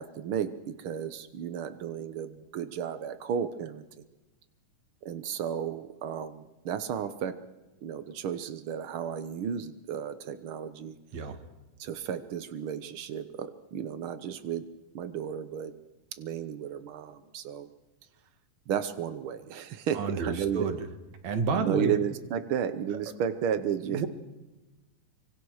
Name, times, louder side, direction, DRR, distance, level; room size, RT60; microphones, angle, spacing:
voice 1, 0.0-3.8 5.0-7.4 7.8-11.0 11.8-14.6 14.9-15.7 16.2-17.7 18.7-20.7 21.5-24.1, right 8 dB, 90° right, 11 dB, 1.1 m, -33 dB
voice 2, 19.9-20.9 21.2-22.0 23.8-24.1, right 5 dB, 60° right, 8 dB, 3.0 m, -30 dB
25.5 x 25.0 x 6.4 m, 1.1 s
omnidirectional pair, 3.8 m